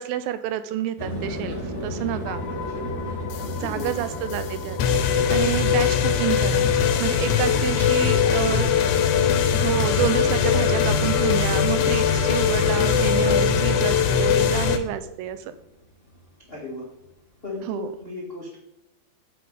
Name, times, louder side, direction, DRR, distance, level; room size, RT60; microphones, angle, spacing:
voice 1, 0.0-1.6 1.8-2.4 3.6-4.8 5.1-6.7 7.0-8.7 9.5-15.5 17.7-17.9, right 11 dB, 80° right, 12 dB, 2.2 m, -28 dB
sound 1, 1.0-15.5 15.8-16.4, equal, 30° right, 4.4 m, -36 dB
sound 2, 2.3-14.8, left 7 dB, 75° left, 2.6 m, -21 dB
voice 2, 3.4-3.9 7.5-7.6 8.0-8.6 16.5-16.9 17.4-18.6, left 3 dB, 40° left, -3 dB, 0.8 m, -35 dB
Bass guitar, 7.7-13.9, left 4 dB, 55° left, 4.0 m, -47 dB
8.7 x 8.3 x 4.0 m, 0.86 s
omnidirectional pair, 4.4 m